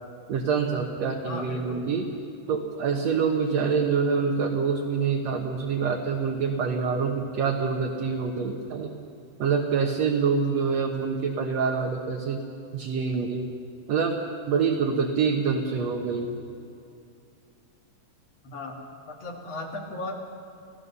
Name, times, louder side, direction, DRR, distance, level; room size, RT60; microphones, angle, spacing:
voice 1, 0.3-2.1 2.5-8.9 9.4-12.4 12.7-13.5 13.9-14.2 14.5-16.3, right 5 dB, 65° right, 0 dB, 2.4 m, -26 dB
voice 2, 1.2-1.8 3.5-3.7 18.4-18.8 19.0-20.2, left 2 dB, 55° left, 0 dB, 3.5 m, -36 dB
28.0 x 16.0 x 6.9 m, 2.5 s
omnidirectional pair, 3.4 m